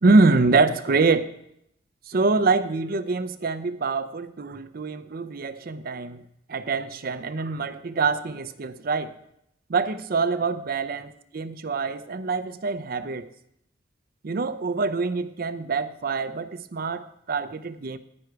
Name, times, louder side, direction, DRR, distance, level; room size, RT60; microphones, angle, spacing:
voice 1, 0.0-1.3 2.1-6.2 6.5-9.1 9.7-13.3 14.2-18.0, right 3 dB, 55° right, 0.6 m, -25 dB
9.8 x 9.6 x 4.6 m
head